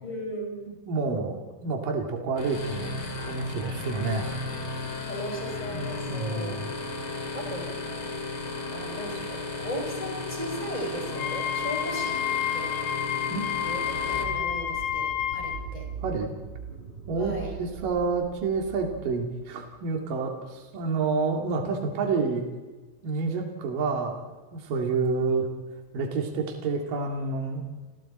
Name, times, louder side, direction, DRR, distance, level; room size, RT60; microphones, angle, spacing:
voice 1, 0.0-0.6 5.1-6.6 7.3-7.8 8.7-12.2 12.5-12.8 13.6-15.9 17.2-17.6, equal, 10° left, 0 dB, 5.5 m, -36 dB
voice 2, 0.7-1.4 1.6-2.9 3.2-4.4 5.7-6.7 13.3-13.5 16.0-16.3 17.1-22.5 23.0-24.2 24.5-25.5 25.9-27.7, right 4 dB, 55° right, 1 dB, 3.8 m, -29 dB
sound 1, 2.4-14.2, left 2 dB, 30° left, 2.5 m, -34 dB
Wind instrument woodwind instrument, 11.1-15.6, left 10 dB, 90° left, 3.4 m, -30 dB
sound 2, 13.5-19.8, right 6 dB, 15° right, 5.9 m, -41 dB
29.5 x 28.5 x 4.4 m, 1.3 s
omnidirectional pair, 4.9 m